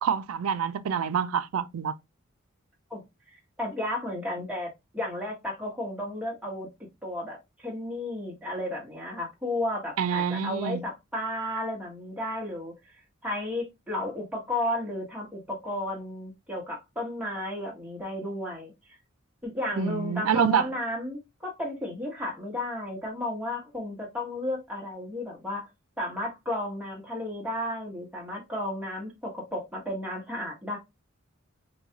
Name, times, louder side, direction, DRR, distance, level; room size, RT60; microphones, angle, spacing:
voice 1, 0.0-2.0 10.0-10.8 19.8-20.7, right 7 dB, 90° right, 0.4 m, -27 dB
voice 2, 3.6-6.7 7.0-13.0 13.2-18.7 19.4-25.7 26.0-30.8, left 1 dB, 5° right, 1.1 m, -33 dB
3.9 x 2.3 x 2.8 m
head